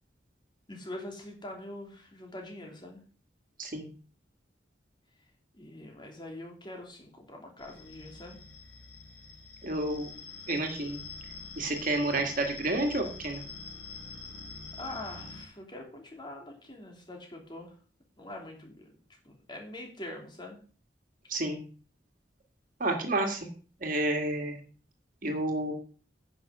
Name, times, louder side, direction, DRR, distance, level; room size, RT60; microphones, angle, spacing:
voice 1, 0.7-3.0 5.5-8.4 14.8-17.7 18.2-18.9 19.2-20.6, left 1 dB, 25° left, 1 dB, 3.1 m, -44 dB
sound 1, 7.6-15.5, left 4 dB, 55° left, 4.4 m, -45 dB
voice 2, 9.6-10.1 10.5-11.0 11.6-13.4 21.3-21.6 22.8-23.5 23.8-24.6 25.2-25.7, right 2 dB, 50° right, 3 dB, 2.0 m, -30 dB
10.5 x 6.3 x 6.3 m, 0.40 s
head